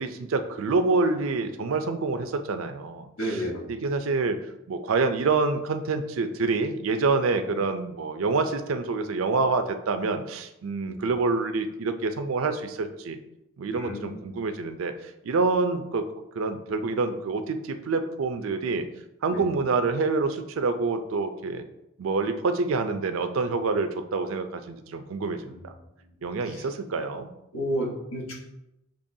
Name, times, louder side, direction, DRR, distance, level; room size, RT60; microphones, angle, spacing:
voice 1, 0.0-3.1 3.7-4.4 4.7-13.2 13.6-16.0 16.3-18.9 19.2-21.6 22.0-25.7 26.2-27.3, right 3 dB, 75° right, 8 dB, 0.4 m, -27 dB
voice 2, 3.2-3.6 10.9-11.0 13.7-14.3 19.3-19.4 25.5-25.7 26.0-26.1 26.4-26.7 27.5-28.3, equal, 90° left, -2 dB, 1.2 m, -32 dB
6.7 x 3.0 x 2.7 m, 0.87 s
head